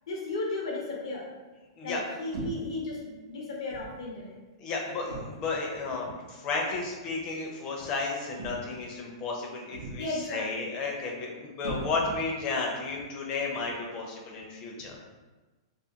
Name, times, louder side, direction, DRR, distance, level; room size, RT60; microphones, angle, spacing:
voice 1, 0.1-1.3 1.8-4.4 10.0-10.8, left 2 dB, 70° left, -2 dB, 0.6 m, -35 dB
sound 1, 2.3-2.8 3.7-4.0 5.1-5.6 6.7-6.9 8.4-8.9 9.7-10.2 11.6-12.3, right 2 dB, 80° right, 0.6 m, -39 dB
voice 2, 4.6-15.0, left 3 dB, 30° left, -1 dB, 0.5 m, -33 dB
2.4 x 2.2 x 2.8 m, 1.2 s
hypercardioid pair, 155°, 3 cm